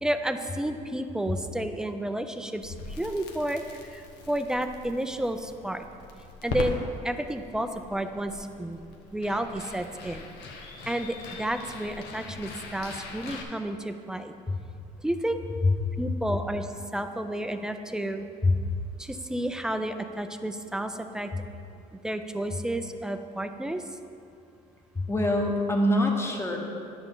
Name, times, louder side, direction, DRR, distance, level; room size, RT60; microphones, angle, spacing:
voice 1, 0.0-3.6 3.9-5.9 6.4-8.8 9.1-10.3 10.9-14.3 15.0-15.4 16.0-18.3 19.0-21.3 22.0-23.8, right 1 dB, 5° right, 8 dB, 0.4 m, -31 dB
Crackle, 2.6-13.4, left 3 dB, 80° left, 1.0 m, -41 dB
voice 2, 24.9-26.6, left 1 dB, 15° left, 1 dB, 1.1 m, -24 dB
10.5 x 6.9 x 3.8 m, 2.5 s
cardioid pair, 110°, 17 cm